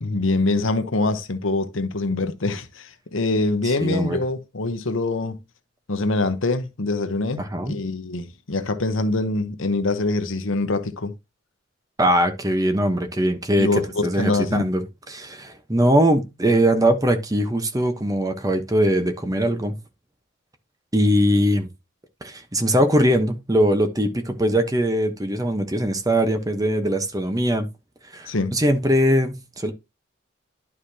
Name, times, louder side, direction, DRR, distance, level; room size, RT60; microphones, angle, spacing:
voice 1, 0.0-5.4 5.9-11.1 13.6-14.6 28.3-28.5, left 2 dB, 75° left, 1.0 m, -24 dB
voice 2, 3.8-4.2 7.4-7.8 12.0-19.7 20.9-21.7 22.2-27.7 28.1-29.7, equal, 20° right, 1.0 m, -21 dB
11.0 x 4.9 x 2.8 m
head